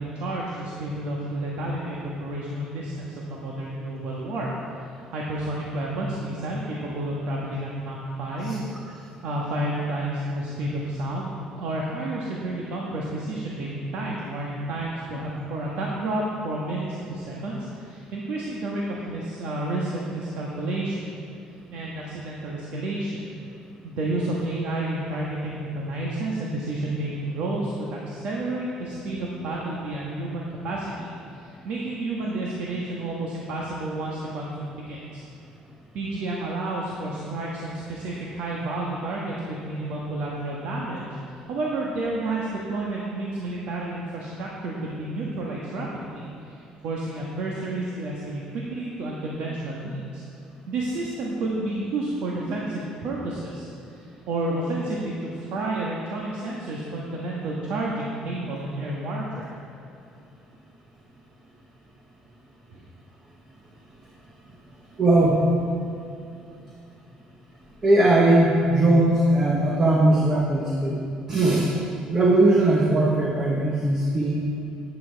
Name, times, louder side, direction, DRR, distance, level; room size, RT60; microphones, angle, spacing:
voice 1, 0.0-4.7 5.1-8.6 9.2-21.0 21.7-23.2 23.8-35.2 35.9-50.2 50.7-59.5 62.7-62.8, right 2 dB, 65° right, -3 dB, 1.5 m, -30 dB
voice 2, 64.9-65.5 67.8-71.0 71.3-71.8 72.1-74.4, right 2 dB, 25° right, -2 dB, 1.1 m, -19 dB
12.0 x 9.7 x 4.7 m, 2.7 s
cardioid pair, 165°, 2 cm